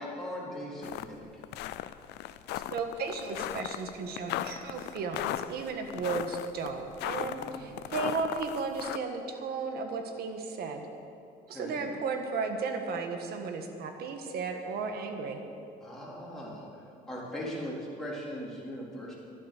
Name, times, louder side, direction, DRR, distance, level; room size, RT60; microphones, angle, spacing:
voice 1, 0.0-1.5 7.2-7.9 11.5-11.9 15.8-19.1, equal, 5° left, -6 dB, 3.8 m, -40 dB
sound 1, 0.8-1.1 1.4-9.0, left 14 dB, 85° left, 0.5 m, -36 dB
voice 2, 2.7-10.9 11.5-15.4, right 4 dB, 65° right, 5 dB, 1.6 m, -34 dB
12.0 x 11.5 x 6.7 m, 2.5 s
cardioid pair, 110°, 17 cm